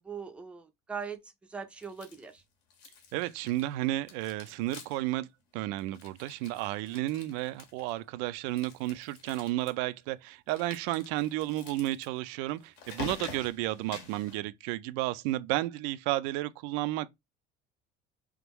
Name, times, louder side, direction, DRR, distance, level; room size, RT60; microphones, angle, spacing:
voice 1, 0.0-2.4, right 6 dB, 5° right, 0.5 m, -41 dB
sound 1, 1.8-2.4 2.7-3.7 4.0-5.1 5.4-5.5 5.8-8.0 8.5-9.7 10.5-14.4, left 5 dB, 75° left, 1.5 m, -47 dB
voice 2, 3.1-17.1, right 16 dB, 90° right, 0.4 m, -32 dB
3.6 x 3.4 x 3.0 m
cardioid pair, 175°, 18 cm